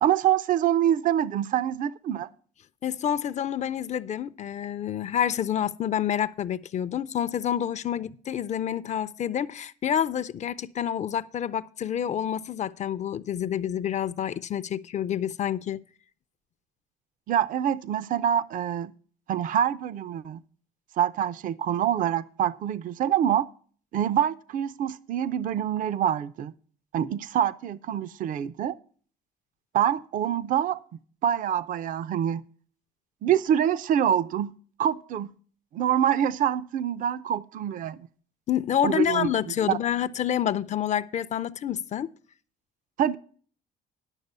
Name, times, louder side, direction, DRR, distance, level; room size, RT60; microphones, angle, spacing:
voice 1, 0.0-2.3 17.3-18.9 19.3-20.4 21.0-23.5 23.9-26.5 26.9-28.8 29.7-30.8 31.2-32.4 33.2-34.5 34.8-35.3 35.7-38.1 38.8-39.3 39.7-39.8 43.0-43.2, right 10 dB, 50° right, 0.5 m, -25 dB
voice 2, 2.8-15.8 38.5-42.1, left 9 dB, 45° left, 0.5 m, -28 dB
11.0 x 6.6 x 5.3 m
cardioid pair, 110°, 17 cm